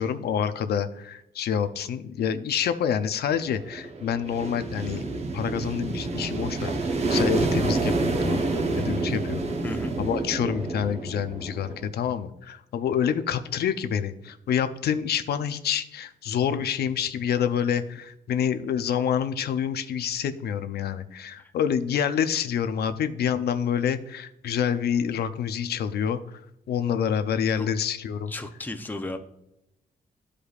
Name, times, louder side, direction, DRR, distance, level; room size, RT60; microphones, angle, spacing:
voice 1, 0.0-5.0 5.3-8.5 8.8-9.4 10.0-26.4 26.7-28.3, left 8 dB, 85° left, 10 dB, 0.6 m, -27 dB
sound 1, 3.3-11.9, right 2 dB, 40° right, 1.0 m, -28 dB
voice 2, 9.6-10.0 21.4-21.5 27.5-27.7 28.3-29.2, left 2 dB, 10° left, 6 dB, 0.6 m, -34 dB
13.0 x 5.0 x 2.4 m, 0.85 s
wide cardioid pair, 155°, 16 cm